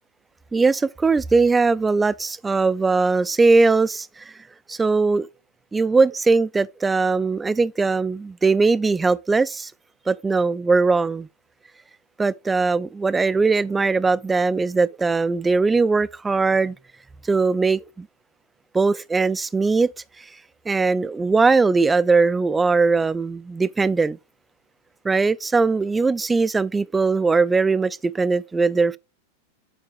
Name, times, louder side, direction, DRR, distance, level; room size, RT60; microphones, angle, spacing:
voice 1, 0.5-4.3 4.7-5.3 5.7-9.7 10.1-11.3 12.2-16.8 17.3-18.1 18.7-19.9 20.2-20.3 20.7-24.2 25.0-29.0, right 4 dB, 10° right, 0.3 m, -20 dB
7.4 x 4.6 x 3.4 m
figure-of-eight pair, 90°, 0 cm